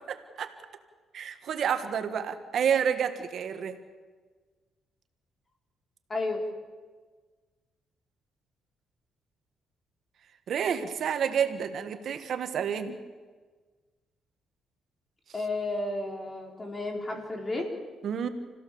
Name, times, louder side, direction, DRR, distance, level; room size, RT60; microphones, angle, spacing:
voice 1, 0.1-0.5 1.1-3.8 10.5-13.0 18.0-18.3, right 7 dB, 65° right, 8 dB, 1.7 m, -29 dB
voice 2, 6.1-6.4 15.3-17.7, left 2 dB, 25° left, 2 dB, 4.9 m, -32 dB
28.5 x 16.5 x 7.1 m, 1.4 s
cardioid pair, 90°, 0 cm